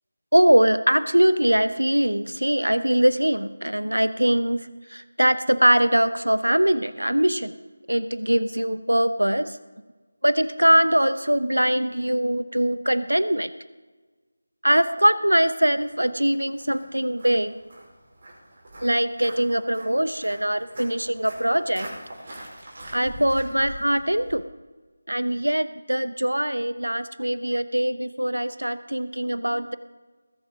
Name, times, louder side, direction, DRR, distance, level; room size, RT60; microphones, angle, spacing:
voice 1, 0.3-4.6 4.9-7.5 7.9-9.5 10.2-13.5 14.6-17.5 18.8-21.9 22.9-24.4 25.1-29.8, right 1 dB, 90° right, 13 dB, 0.9 m, -22 dB
Walk footsteps, 15.7-24.3, right 1 dB, 45° right, 5.3 m, -43 dB
21.0 x 7.4 x 5.1 m, 1.3 s
figure-of-eight pair, 165°, 0 cm